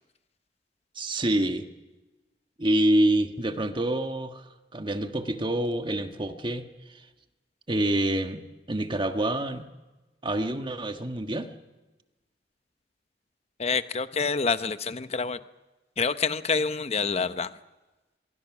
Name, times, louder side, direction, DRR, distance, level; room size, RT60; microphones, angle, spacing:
voice 1, 1.0-1.7 2.6-6.6 7.7-8.4 8.7-9.7 10.2-11.5, right 1 dB, 30° right, 6 dB, 1.4 m, -26 dB
voice 2, 13.6-15.4 16.0-17.5, left 5 dB, 35° left, 12 dB, 0.8 m, -27 dB
24.0 x 22.5 x 6.1 m, 1.1 s
head